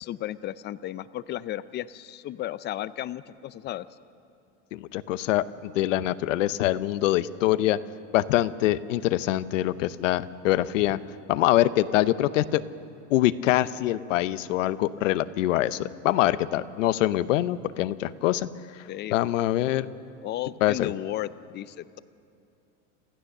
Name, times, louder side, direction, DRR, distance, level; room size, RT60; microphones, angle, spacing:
voice 1, 0.0-3.9 18.9-19.2 20.2-22.0, left 13 dB, 30° left, 16 dB, 0.5 m, -34 dB
voice 2, 4.7-7.8 8.1-11.0 11.3-12.6 13.1-18.5 19.1-19.9 20.6-20.9, left 14 dB, 90° left, 15 dB, 0.8 m, -24 dB
27.0 x 14.5 x 6.7 m, 2.6 s
supercardioid pair, 125°, 37 cm